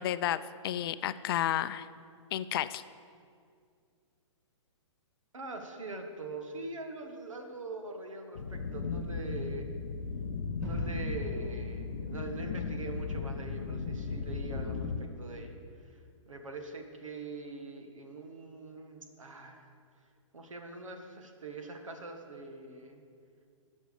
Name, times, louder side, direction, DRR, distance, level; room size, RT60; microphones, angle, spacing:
voice 1, 0.0-1.9 2.3-2.8, left 12 dB, 50° left, 14 dB, 0.4 m, -32 dB
voice 2, 5.3-9.7 10.6-16.0 16.2-19.7 20.3-23.0, right 2 dB, 90° right, 4 dB, 1.6 m, -43 dB
sound 1, 8.4-15.0, left 4 dB, 75° left, 0.9 m, -36 dB
Gunshot gunfire / Fireworks / Boom, 10.6-15.4, equal, 5° right, 3.4 m, -43 dB
12.0 x 6.3 x 6.9 m, 2.3 s
hypercardioid pair, 135°, 16 cm